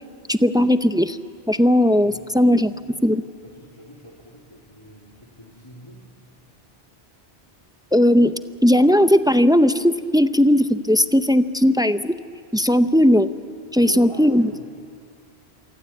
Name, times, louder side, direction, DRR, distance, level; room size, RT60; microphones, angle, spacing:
voice 1, 0.3-1.2 1.5-2.7 3.0-3.2 7.9-12.2 12.5-13.3 13.7-14.5, equal, 5° right, 11 dB, 0.4 m, -17 dB
voice 2, 2.0-3.1 3.4-6.1 13.0-13.1 13.8-14.7, equal, 25° left, -2 dB, 3.2 m, -42 dB
27.5 x 24.0 x 8.5 m, 2.4 s
omnidirectional pair, 1.1 m